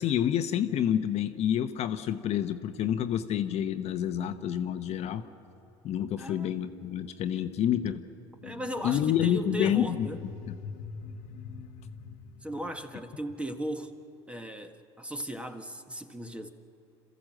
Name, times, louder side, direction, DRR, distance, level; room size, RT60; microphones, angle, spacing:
voice 1, 0.0-5.2 5.8-8.0 8.8-10.1 10.5-10.6, left 10 dB, 50° left, 8 dB, 1.1 m, -28 dB
voice 2, 6.2-6.5 7.3-7.5 8.4-10.2 12.4-13.9 14.3-16.5, equal, 10° right, 7 dB, 1.6 m, -37 dB
sound 1, 8.4-13.5, left 5 dB, 65° left, 1.2 m, -44 dB
27.5 x 14.5 x 7.8 m, 2.7 s
hypercardioid pair, 85°, 14 cm